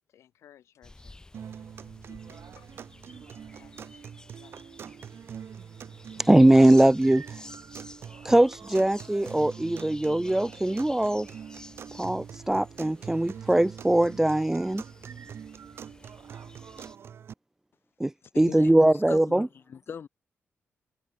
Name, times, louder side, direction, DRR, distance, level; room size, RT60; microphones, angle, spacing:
voice 1, 0.1-1.2 2.0-2.7 3.6-4.6, left 10 dB, 90° left, 7.4 m, -59 dB
sound 1, 0.8-17.0, left 2 dB, 15° left, 4.8 m, -52 dB
sound 2, 1.3-17.3, right 8 dB, 60° right, 1.6 m, -44 dB
voice 2, 6.3-7.2 8.2-11.3 12.0-14.8 18.0-18.1 18.4-19.5, right 1 dB, 10° right, 0.4 m, -21 dB
voice 3, 18.2-20.1, left 7 dB, 50° left, 3.1 m, -40 dB
cardioid pair, 120°, 5 cm